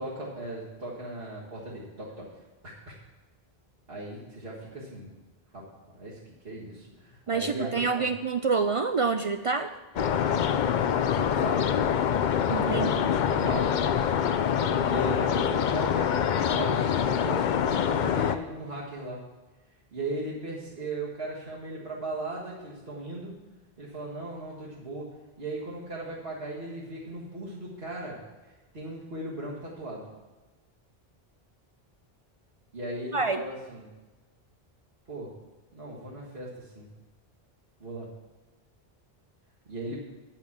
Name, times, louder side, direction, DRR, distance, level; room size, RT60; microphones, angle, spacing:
voice 1, 0.0-2.3 2.6-2.9 3.9-5.1 5.5-5.7 6.0-8.1 11.1-11.7 12.5-13.7 14.9-19.2 19.9-23.3 23.8-25.1 25.4-28.2 28.5-30.1 32.7-33.9 35.1-35.3 35.7-36.9 37.8-38.1 39.7-40.0, right 1 dB, 70° right, -7 dB, 1.9 m, -37 dB
voice 2, 7.3-9.7 12.5-12.9 33.1-33.4, right 4 dB, 55° right, 8 dB, 0.3 m, -27 dB
sound 1, 10.0-18.4, left 8 dB, 55° left, 0.6 m, -25 dB
9.6 x 5.8 x 7.3 m, 1.2 s
omnidirectional pair, 1.0 m